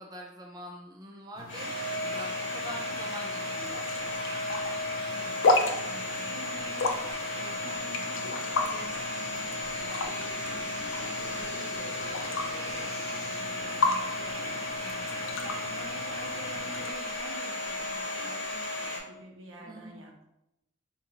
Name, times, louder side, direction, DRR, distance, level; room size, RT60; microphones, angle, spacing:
voice 1, 0.0-4.4 14.8-15.2 19.6-20.0, equal, 20° right, -1 dB, 0.4 m, -45 dB
glass cup water slosh, 1.4-16.9, left 3 dB, 90° left, 0.4 m, -34 dB
Domestic sounds home sounds, 1.5-19.0, left 1 dB, 70° left, 1.2 m, -34 dB
voice 2, 5.1-20.2, right 1 dB, 85° right, 0 dB, 0.8 m, -48 dB
sound 1, 5.6-13.4, left 1 dB, 20° left, 1.1 m, -48 dB
3.8 x 2.5 x 2.9 m, 0.86 s
head